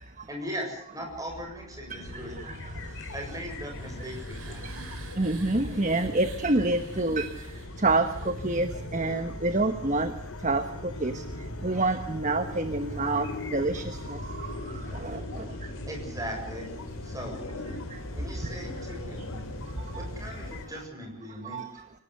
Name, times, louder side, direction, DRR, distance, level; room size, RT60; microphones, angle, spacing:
voice 1, 0.3-2.6 3.1-4.7 15.9-16.7 17.0-17.4 18.1-19.3 20.0-21.6, equal, 15° right, 2 dB, 7.0 m, -39 dB
sound 1, 1.9-20.9, left 4 dB, 85° left, 1.2 m, -47 dB
voice 2, 1.9-2.6 4.0-4.1 4.6-4.7 5.2-7.3 7.8-10.1 10.4-11.2 11.6-15.5 17.9-18.0 18.4-18.5 19.9-20.0 21.4-21.7, right 2 dB, 35° right, 8 dB, 1.2 m, -28 dB
sound 2, 2.0-20.7, left 1 dB, 60° left, 3.8 m, -39 dB
sound 3, 3.2-9.0, right 5 dB, 70° right, 4.0 m, -50 dB
25.0 x 18.5 x 8.1 m, 0.66 s
head